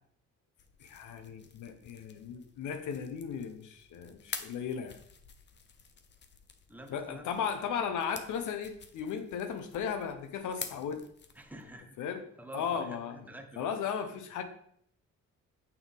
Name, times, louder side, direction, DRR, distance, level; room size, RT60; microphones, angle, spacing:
sound 1, 0.6-11.8, left 6 dB, 35° left, 0.7 m, -49 dB
voice 1, 0.8-5.0 6.9-11.0 12.0-12.2 12.5-13.2 13.6-14.4, left 7 dB, 80° left, 8 dB, 0.9 m, -36 dB
voice 2, 6.7-7.5 11.3-13.7, right 1 dB, 5° right, 5 dB, 0.9 m, -48 dB
6.6 x 5.7 x 3.4 m, 0.67 s
cardioid pair, 90°, 30 cm